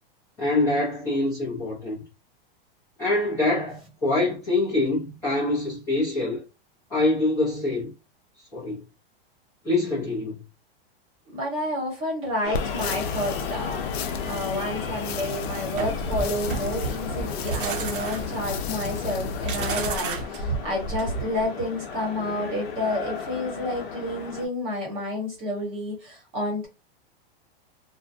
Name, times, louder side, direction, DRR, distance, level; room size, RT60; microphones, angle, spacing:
voice 1, 0.4-2.0 3.0-6.4 6.9-7.9 8.5-8.8 9.6-10.4, left 2 dB, 10° left, 0.5 m, -25 dB
voice 2, 11.3-13.9 14.2-26.7, left 1 dB, 20° right, 0.9 m, -30 dB
sound 1, 12.4-24.5, left 6 dB, 55° left, 0.8 m, -35 dB
sound 2, 12.5-20.0, left 5 dB, 90° left, 0.5 m, -33 dB
sound 3, 15.7-21.4, right 4 dB, 60° right, 0.7 m, -31 dB
2.5 x 2.1 x 2.5 m
supercardioid pair, 175°, 30 cm